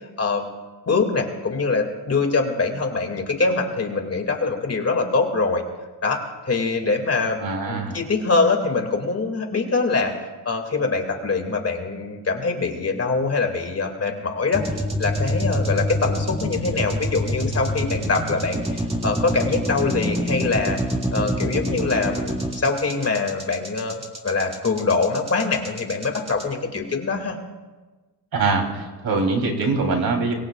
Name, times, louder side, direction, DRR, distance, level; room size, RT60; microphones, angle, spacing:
voice 1, 0.9-5.6 6.0-6.2 6.4-7.4 7.7-10.1 10.5-20.8 21.1-27.4, left 4 dB, 35° left, 3 dB, 2.4 m, -23 dB
voice 2, 7.4-8.0 28.3-30.3, right 3 dB, 55° right, 1 dB, 3.5 m, -23 dB
sound 1, 14.5-26.4, equal, 15° right, 1.9 m, -26 dB
26.0 x 22.0 x 2.4 m, 1.3 s
cardioid pair, 115°, 42 cm